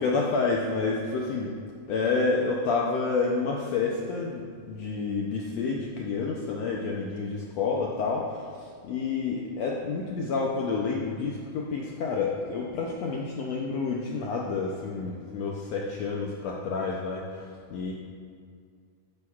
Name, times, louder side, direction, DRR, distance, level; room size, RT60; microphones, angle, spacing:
voice 1, 0.0-1.6 1.9-17.9, left 4 dB, 75° left, -2 dB, 1.6 m, -29 dB
12.0 x 10.0 x 2.4 m, 2.1 s
omnidirectional pair, 3.7 m